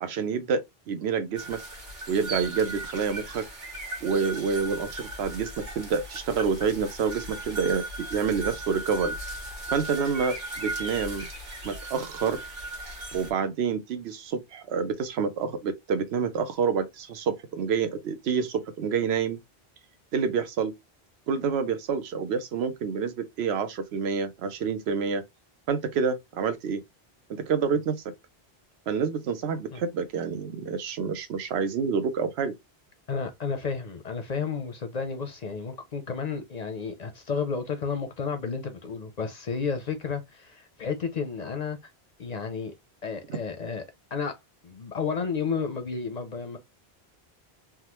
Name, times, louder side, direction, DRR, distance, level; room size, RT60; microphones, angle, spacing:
voice 1, 0.0-1.6 2.1-3.4 4.0-7.8 8.1-9.1 9.7-11.2 11.6-12.4 13.1-19.4 20.1-20.7 21.3-25.2 25.7-26.8 27.3-28.0 28.9-32.5, right 6 dB, 85° right, 0.9 m, -28 dB
sound 1, 1.4-13.3, right 2 dB, 50° right, 1.4 m, -37 dB
voice 2, 33.1-41.9 42.2-42.7 43.0-43.8 44.1-44.4 44.6-46.6, left 5 dB, 50° left, 0.6 m, -32 dB
3.5 x 2.1 x 2.9 m
omnidirectional pair, 1.1 m